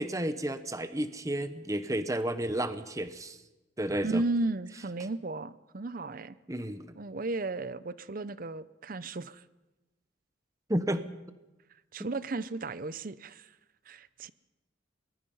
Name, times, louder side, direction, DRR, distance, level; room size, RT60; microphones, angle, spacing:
voice 1, 0.0-3.4 3.8-4.2 6.5-6.9 10.7-11.1, right 1 dB, 15° right, 11 dB, 1.0 m, -32 dB
voice 2, 4.0-6.4 7.0-9.4 11.9-13.5 13.9-14.3, right 2 dB, 45° right, 16 dB, 0.6 m, -34 dB
24.0 x 21.0 x 5.5 m, 1.1 s
head